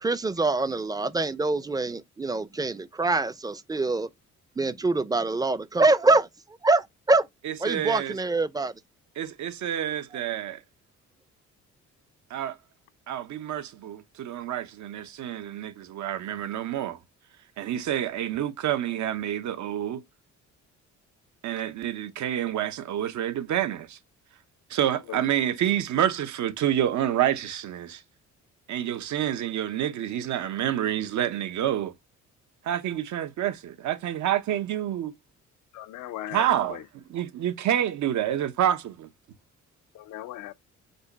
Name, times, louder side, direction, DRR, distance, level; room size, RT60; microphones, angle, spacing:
voice 1, 0.0-4.1 4.6-6.3 6.6-7.3 7.6-8.7, right 3 dB, 15° right, 0.4 m, -24 dB
voice 2, 7.4-8.1 9.2-10.6 12.3-12.6 13.1-17.0 17.6-20.0 21.4-24.0 24.7-28.0 28.7-31.9 32.7-35.1 36.3-36.8 37.1-39.1, right 11 dB, 70° right, 0.8 m, -28 dB
voice 3, 35.7-36.9 39.9-40.5, left 13 dB, 80° left, 0.6 m, -38 dB
5.3 x 2.2 x 3.9 m
cardioid pair, 90°, 30 cm